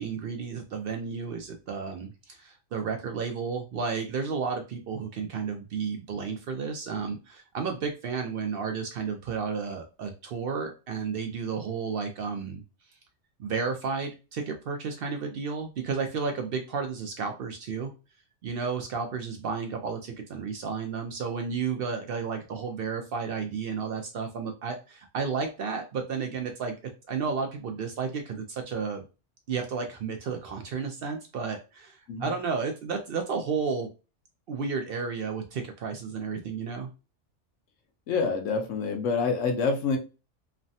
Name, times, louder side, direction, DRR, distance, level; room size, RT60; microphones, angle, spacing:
voice 1, 0.0-12.6 13.4-17.9 18.4-26.7 27.1-29.0 29.5-33.9 34.5-36.9, right 5 dB, 60° right, 5 dB, 0.6 m, -32 dB
voice 2, 38.1-40.0, left 4 dB, 80° left, 4 dB, 1.0 m, -26 dB
3.2 x 2.1 x 2.6 m, 0.30 s
omnidirectional pair, 1.3 m